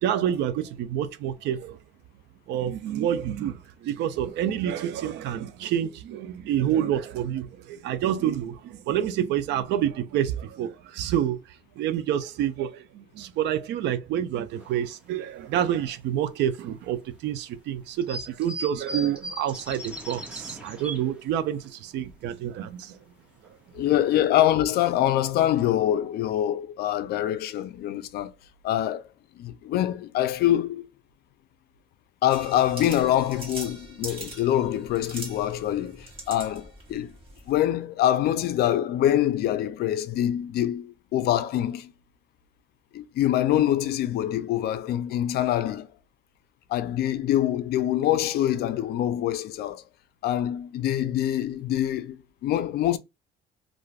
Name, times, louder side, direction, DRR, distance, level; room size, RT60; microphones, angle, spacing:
voice 1, 0.0-1.8 2.5-23.0, right 10 dB, 70° right, 0.5 m, -28 dB
sound 1, 14.6-14.9 15.5-15.6 16.5-16.6 18.0-21.2 21.6-21.7 22.0-22.1 22.6-22.8 23.4-23.5 23.9-24.1 24.5-24.6, equal, 5° right, 0.7 m, -38 dB
voice 2, 23.7-28.3 28.6-29.1 29.4-30.9 32.2-37.1 37.5-41.9 42.9-45.9 46.7-49.8 50.2-53.0, left 12 dB, 60° left, 0.4 m, -25 dB
sound 2, 32.3-37.6, right 2 dB, 30° right, 1.3 m, -42 dB
2.5 x 2.3 x 3.2 m
cardioid pair, 140°, 18 cm